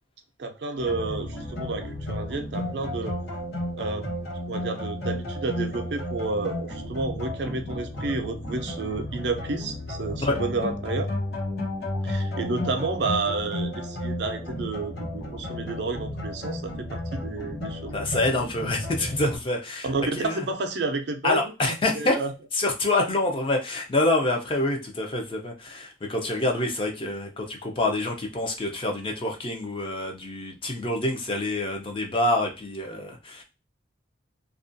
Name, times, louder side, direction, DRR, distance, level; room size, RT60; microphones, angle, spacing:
voice 1, 0.4-3.1 3.7-4.1 4.5-11.1 12.0-18.0 19.8-21.5 21.9-22.3, right 3 dB, 60° right, 6 dB, 0.4 m, -30 dB
sound 1, 0.8-19.4, left 1 dB, 60° left, 1.0 m, -33 dB
voice 2, 17.9-19.9 20.2-20.4 21.2-22.1 22.6-33.4, left 2 dB, 25° left, 2 dB, 0.5 m, -26 dB
2.4 x 2.2 x 2.5 m, 0.29 s
head